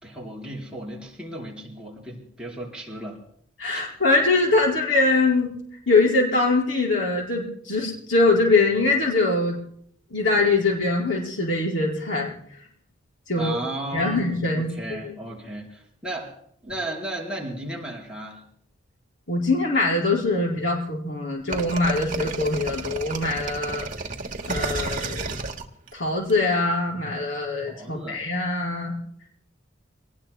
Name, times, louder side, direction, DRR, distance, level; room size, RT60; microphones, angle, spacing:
voice 1, 0.0-3.2 3.7-3.8 13.4-16.4 16.6-18.4 27.6-28.2, right 1 dB, 5° right, -3 dB, 4.2 m, -35 dB
voice 2, 3.6-5.5 5.9-9.6 10.1-12.3 13.3-13.6 13.9-14.7 15.0-15.1 19.3-23.9 24.5-25.3 25.9-28.9, left 3 dB, 70° left, -1 dB, 5.0 m, -23 dB
sound 1, 21.5-26.3, right 3 dB, 45° right, 1.5 m, -31 dB
27.0 x 19.5 x 2.2 m, 0.64 s
head